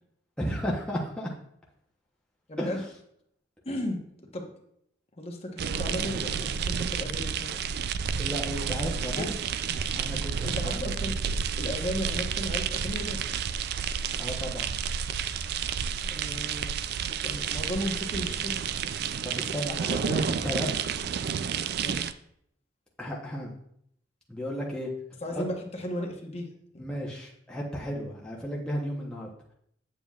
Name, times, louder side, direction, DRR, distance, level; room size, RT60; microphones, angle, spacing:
voice 1, 0.4-1.3 2.6-2.8 8.2-9.3 9.9-11.1 14.2-14.8 19.2-20.8 23.0-23.5 24.3-24.9 26.8-29.3, equal, 5° left, -4 dB, 0.9 m, -34 dB
voice 2, 2.5-2.8 3.6-4.5 5.2-7.6 9.2-9.3 10.4-13.4 16.1-16.7 17.2-18.6 21.8-22.1 25.2-26.5 26.7-26.8, left 1 dB, 30° left, 2 dB, 1.0 m, -35 dB
sound 1, 5.6-22.1, right 7 dB, 55° right, 0.3 m, -30 dB
8.8 x 7.4 x 2.4 m, 0.71 s
head